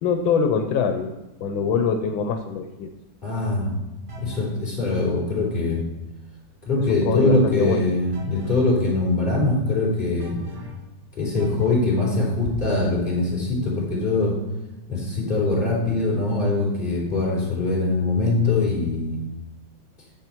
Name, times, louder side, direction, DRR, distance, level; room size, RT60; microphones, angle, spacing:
voice 1, 0.0-1.1 1.4-2.9 6.9-7.9, left 6 dB, 85° left, 6 dB, 1.6 m, -23 dB
voice 2, 3.2-3.7 4.2-5.8 6.6-10.4 11.1-14.4 14.9-19.2, left 2 dB, 25° left, -5 dB, 4.2 m, -22 dB
sound 1, 4.1-4.6 8.1-8.7 10.2-10.9 11.4-11.9, equal, 60° right, 2.0 m, -37 dB
9.5 x 7.8 x 4.5 m, 1.0 s
omnidirectional pair, 2.1 m